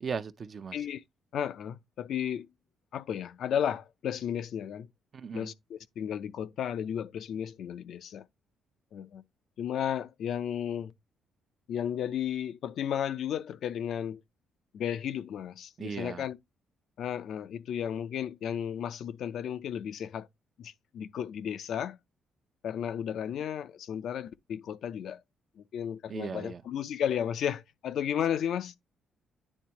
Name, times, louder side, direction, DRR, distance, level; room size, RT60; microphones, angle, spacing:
voice 1, 0.0-0.8 5.1-5.5 15.8-16.2 26.1-26.6, right 6 dB, 45° right, 0.7 m, -37 dB
voice 2, 1.3-2.5 2.9-4.9 5.3-8.3 8.9-9.2 9.6-10.9 11.7-14.2 14.7-16.4 17.0-20.3 20.6-22.0 22.6-25.2 25.6-28.8, left 9 dB, 70° left, 0.5 m, -33 dB
9.8 x 3.5 x 2.9 m
cardioid pair, 90°, 0 cm